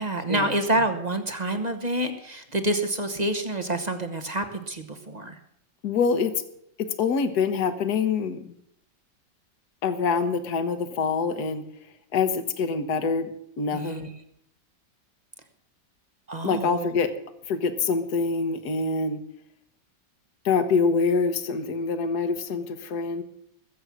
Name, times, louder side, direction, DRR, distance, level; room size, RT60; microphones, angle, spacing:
voice 1, 0.0-5.4 13.7-14.1 16.3-16.9, right 1 dB, 25° right, 7 dB, 1.0 m, -28 dB
voice 2, 5.8-6.3 6.8-8.5 9.8-11.6 12.1-14.0 16.4-17.1 17.5-19.2 20.4-23.2, left 5 dB, 60° left, 10 dB, 1.6 m, -25 dB
21.0 x 7.9 x 6.2 m, 0.74 s
omnidirectional pair, 2.0 m